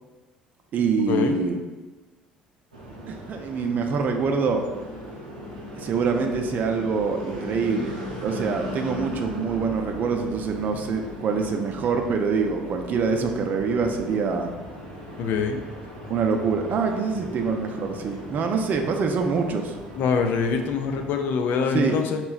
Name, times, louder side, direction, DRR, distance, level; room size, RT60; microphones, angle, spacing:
voice 1, 0.7-1.6 3.1-4.6 5.8-7.9 8.2-14.5 16.1-19.7 21.7-22.0, right 5 dB, 45° right, 4 dB, 0.5 m, -25 dB
sound 1, 2.7-21.1, equal, 85° right, 0.6 m, -38 dB
voice 2, 15.2-15.7 20.0-22.2, left 5 dB, 50° left, 5 dB, 0.4 m, -24 dB
4.6 x 2.9 x 2.4 m, 1.2 s
figure-of-eight pair, 55°, 4 cm